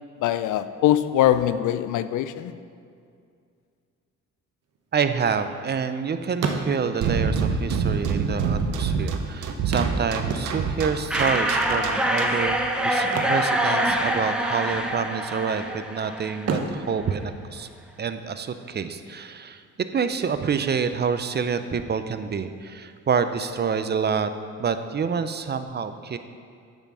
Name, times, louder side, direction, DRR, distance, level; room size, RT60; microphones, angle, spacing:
voice 1, 0.2-2.5, left 12 dB, 80° left, 12 dB, 0.5 m, -22 dB
sound 1, 4.7-6.0 6.3-7.1 8.1-8.2 8.4-8.5 9.7-10.9 13.0-14.3 14.5-14.8 15.3-15.9 16.4-18.1 20.1-20.2 20.7-20.8, right 4 dB, 55° right, 1.1 m, -32 dB
voice 2, 4.9-17.7 18.0-19.6 19.9-24.3 24.6-26.2, right 6 dB, 35° right, 10 dB, 0.6 m, -27 dB
sound 2, 7.0-12.5, right 5 dB, 85° right, 0.9 m, -26 dB
sound 3, 11.1-16.6, equal, 5° right, 0.8 m, -25 dB
9.0 x 5.6 x 6.2 m, 2.3 s
cardioid pair, 90°, 30 cm